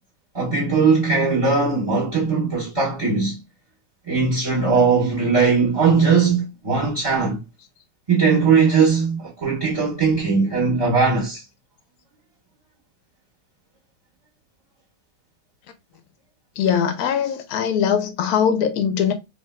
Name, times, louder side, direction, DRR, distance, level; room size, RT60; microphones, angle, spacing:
voice 1, 0.3-3.4 4.1-7.4 8.1-11.4, right 5 dB, 20° right, 1.0 m, -19 dB
voice 2, 16.6-19.1, left 8 dB, 70° left, 1.0 m, -21 dB
3.4 x 2.9 x 2.2 m
omnidirectional pair, 1.9 m